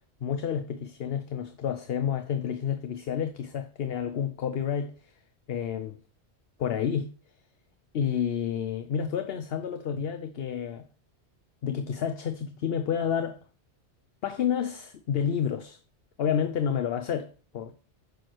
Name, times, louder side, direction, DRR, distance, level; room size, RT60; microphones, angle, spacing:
voice 1, 0.2-4.9 5.5-6.0 6.6-7.1 7.9-10.9 11.6-13.4 14.2-15.8 16.2-17.7, left 8 dB, 65° left, 0.9 m, -29 dB
9.5 x 6.3 x 4.5 m
omnidirectional pair, 1.1 m